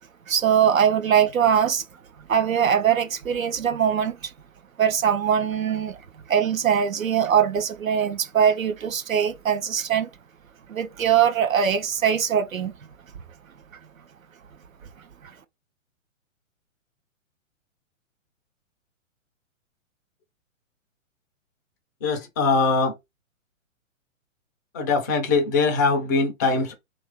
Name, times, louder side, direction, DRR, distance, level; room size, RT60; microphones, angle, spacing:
voice 1, 0.3-1.8 2.3-4.3 4.8-6.0 6.3-10.1 10.7-12.7, right 8 dB, 80° right, 0.7 m, -22 dB
voice 2, 22.0-22.9 24.7-26.7, left 4 dB, 15° left, 0.4 m, -22 dB
2.9 x 2.6 x 3.4 m
figure-of-eight pair, 120°, 40 cm